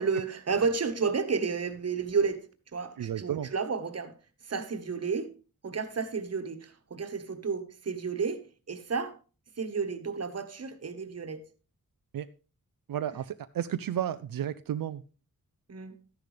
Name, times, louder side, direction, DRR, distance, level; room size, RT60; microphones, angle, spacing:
voice 1, 0.0-4.2 4.5-5.3 5.6-9.2 9.6-11.4 15.7-15.9, right 5 dB, 50° right, 1.3 m, -31 dB
voice 2, 3.0-3.5 12.1-12.3 12.9-15.0, right 10 dB, 85° right, 0.5 m, -32 dB
13.0 x 10.5 x 3.3 m
wide cardioid pair, 145°, 33 cm